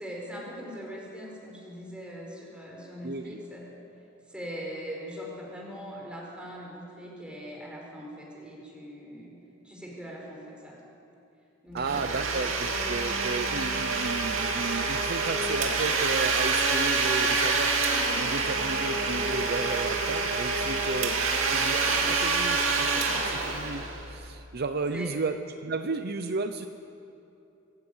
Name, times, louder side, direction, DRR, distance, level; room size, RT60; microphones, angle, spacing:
voice 1, 0.0-3.7 4.3-9.3 9.6-10.8 11.6-12.5 24.9-25.1, equal, 5° right, -2 dB, 5.1 m, -41 dB
voice 2, 3.0-3.4 11.7-26.7, right 3 dB, 50° right, 8 dB, 0.7 m, -33 dB
Domestic sounds home sounds, 11.8-24.3, right 4 dB, 80° right, 2.6 m, -27 dB
24.0 x 15.5 x 8.8 m, 2.7 s
head